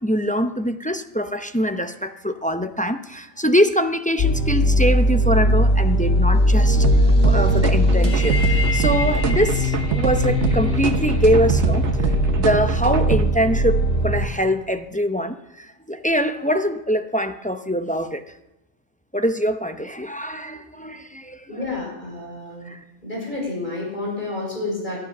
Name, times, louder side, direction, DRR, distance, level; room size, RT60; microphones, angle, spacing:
voice 1, 0.0-6.9 7.2-18.2 19.1-21.5 22.7-22.8, equal, 10° left, 8 dB, 0.5 m, -23 dB
sound 1, 4.2-14.3, equal, 55° left, 1.9 m, -19 dB
sound 2, 6.8-13.2, right 6 dB, 70° right, 1.2 m, -25 dB
voice 2, 21.5-22.7 23.0-25.0, left 2 dB, 40° left, -2 dB, 6.5 m, -30 dB
19.5 x 12.0 x 6.0 m, 0.93 s
omnidirectional pair, 1.3 m